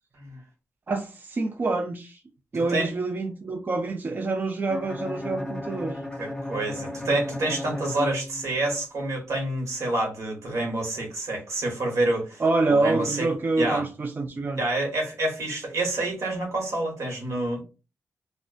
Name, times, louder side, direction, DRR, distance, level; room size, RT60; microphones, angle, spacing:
voice 1, 0.9-2.2 2.5-6.0 12.4-14.6, right 3 dB, 40° right, 0.4 m, -26 dB
voice 2, 2.5-2.9 6.2-13.3 13.6-13.9 14.5-17.6, right 2 dB, 70° right, 1.2 m, -28 dB
Bowed string instrument, 4.7-8.8, left 1 dB, 15° left, 0.7 m, -34 dB
2.5 x 2.1 x 2.3 m
cardioid pair, 60°, 5 cm